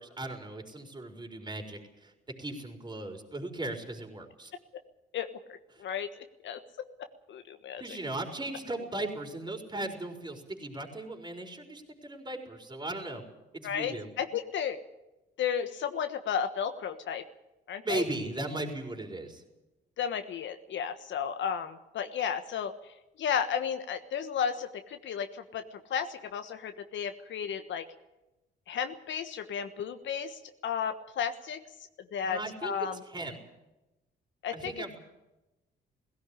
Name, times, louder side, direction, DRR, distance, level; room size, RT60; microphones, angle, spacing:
voice 1, 0.0-2.1 2.4-4.5 5.7-5.8 7.8-13.2 13.5-14.1 17.8-19.4 32.2-33.4 34.5-34.9, right 2 dB, 20° right, 4 dB, 4.6 m, -37 dB
voice 2, 7.3-8.0 13.6-14.8 15.4-17.2 17.7-18.0 20.0-22.7 23.2-27.8 28.7-31.6 32.1-33.0 34.4-35.0, left 7 dB, 70° left, 8 dB, 1.3 m, -33 dB
17.5 x 16.5 x 9.9 m, 0.99 s
cardioid pair, 90°, 20 cm